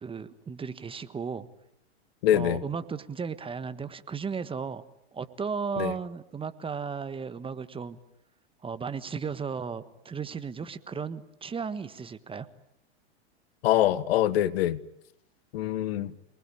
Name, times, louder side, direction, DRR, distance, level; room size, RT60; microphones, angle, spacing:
voice 1, 0.0-1.5 2.3-4.8 5.1-8.0 8.6-12.5, right 5 dB, 15° right, 1.4 m, -35 dB
voice 2, 2.2-2.6 5.8-5.9 13.6-14.8 15.5-16.1, left 12 dB, 60° left, 1.5 m, -24 dB
28.5 x 20.0 x 10.0 m
hypercardioid pair, 105°, 34 cm